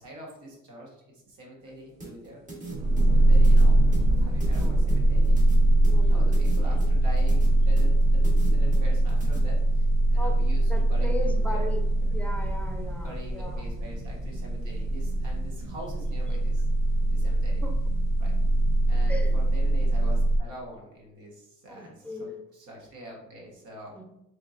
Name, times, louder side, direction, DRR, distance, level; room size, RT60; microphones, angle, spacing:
voice 1, 0.0-2.4 3.0-3.8 4.2-5.5 6.1-11.7 11.9-12.1 13.0-16.7 17.1-17.6 18.2-18.3 18.9-24.0, right 1 dB, 80° right, -2 dB, 1.4 m, -45 dB
sound 1, 2.0-9.4, right 2 dB, 25° right, 1.4 m, -41 dB
sound 2, 2.7-20.4, right 1 dB, 60° right, 0.6 m, -22 dB
voice 2, 4.4-4.8 5.9-6.5 10.2-10.4 10.7-13.6 17.6-17.7 19.1-19.4 21.7-22.4 23.9-24.0, left 1 dB, 5° left, 3 dB, 0.5 m, -38 dB
4.0 x 3.5 x 2.5 m, 0.83 s
cardioid pair, 90°, 30 cm